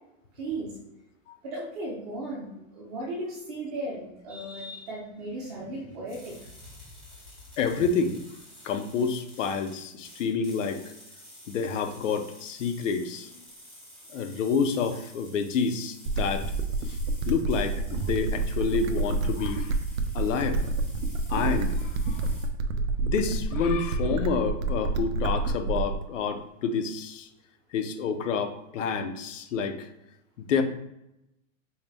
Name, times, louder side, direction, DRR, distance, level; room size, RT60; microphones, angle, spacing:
voice 1, 0.4-0.7 1.4-6.4, right 1 dB, 30° right, -3 dB, 0.8 m, -36 dB
sound 1, 6.1-22.5, equal, ahead, 0.4 m, -51 dB
voice 2, 7.6-8.2 8.6-10.8 11.5-13.3 14.1-16.5 16.9-17.0 17.3-19.7 20.1-20.6 21.3-22.2 23.0-27.3 27.7-29.9 30.5-30.6, left 5 dB, 70° left, 8 dB, 0.7 m, -28 dB
sound 2, 16.1-26.1, right 3 dB, 80° right, 0.6 m, -28 dB
4.4 x 2.1 x 3.4 m, 0.86 s
supercardioid pair, 165°, 39 cm